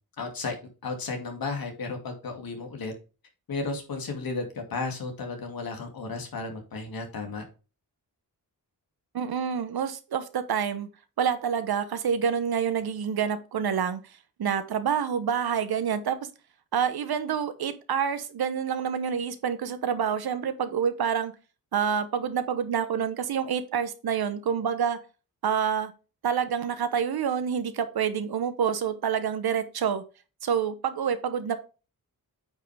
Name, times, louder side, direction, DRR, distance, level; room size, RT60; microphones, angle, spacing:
voice 1, 0.2-0.5 0.8-2.9 3.5-7.4, left 3 dB, 70° left, 4 dB, 2.6 m, -33 dB
voice 2, 9.1-10.9 11.2-14.0 14.4-16.2 16.7-21.3 21.7-25.0 25.4-25.9 26.2-30.0 30.4-31.6, right 7 dB, 80° right, 11 dB, 1.2 m, -27 dB
8.9 x 5.6 x 3.5 m, 0.32 s
wide cardioid pair, 140°, 37 cm